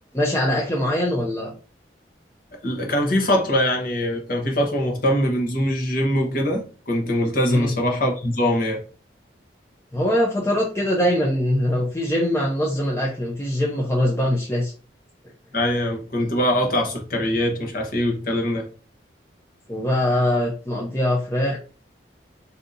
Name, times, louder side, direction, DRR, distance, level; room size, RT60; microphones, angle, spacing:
voice 1, 0.1-1.5 7.4-7.7 9.9-14.7 19.7-21.7, left 1 dB, 15° left, 0.5 m, -22 dB
voice 2, 2.6-8.8 15.5-18.7, equal, 50° left, 1.0 m, -22 dB
3.8 x 2.7 x 2.6 m
head